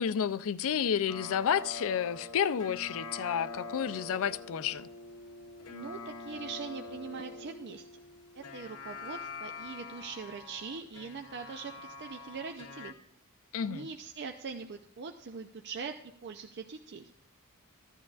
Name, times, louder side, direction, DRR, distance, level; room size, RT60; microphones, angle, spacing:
voice 1, 0.0-4.9 13.5-13.9, left 8 dB, 65° left, 0.4 m, -31 dB
sound 1, 1.1-12.9, left 3 dB, 85° left, 0.8 m, -45 dB
voice 2, 5.7-7.9 8.5-12.9 13.6-17.1, right 5 dB, 50° right, 0.5 m, -42 dB
15.0 x 11.0 x 2.4 m
head